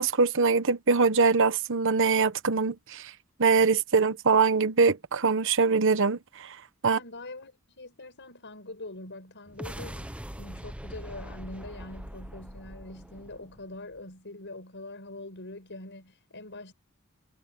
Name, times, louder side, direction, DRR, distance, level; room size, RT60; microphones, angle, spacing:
voice 1, 0.0-3.1 3.4-6.6 6.8-7.0, right 4 dB, 60° right, 1.1 m, -23 dB
voice 2, 6.8-16.7, left 2 dB, 55° left, 7.9 m, -43 dB
sound 1, 9.5-14.0, equal, 5° right, 1.0 m, -42 dB
head